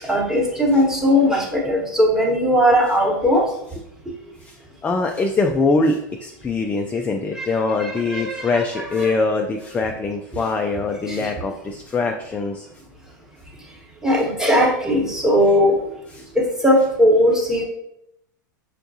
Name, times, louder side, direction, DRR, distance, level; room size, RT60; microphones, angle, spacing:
voice 1, 0.0-3.5 7.3-7.4 7.8-9.1 11.1-11.3 14.0-15.8 16.3-17.6, equal, 5° right, -2 dB, 1.0 m, -18 dB
voice 2, 4.8-12.7 16.1-16.2, left 3 dB, 15° left, 3 dB, 0.3 m, -23 dB
5.7 x 2.3 x 2.6 m, 0.81 s
hypercardioid pair, 105°, 11 cm